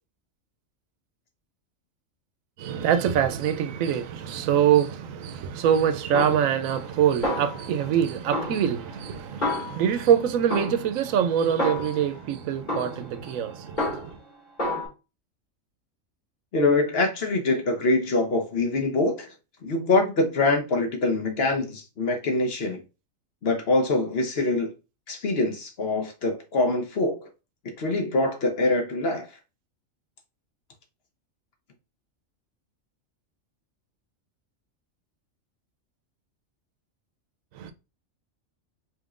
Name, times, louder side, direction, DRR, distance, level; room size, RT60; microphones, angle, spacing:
voice 1, 2.6-14.2 37.5-37.7, right 9 dB, 85° right, 1.0 m, -24 dB
Snare drum, 6.1-7.0 7.2-8.0 8.3-10.1 10.5-12.2 12.7-14.3 14.6-14.9, left 1 dB, 35° left, 2.7 m, -31 dB
voice 2, 16.5-19.3 19.6-22.8 23.4-24.7 25.1-27.3 27.6-29.3, left 2 dB, 55° left, 1.0 m, -24 dB
5.2 x 3.1 x 2.4 m
omnidirectional pair, 1.4 m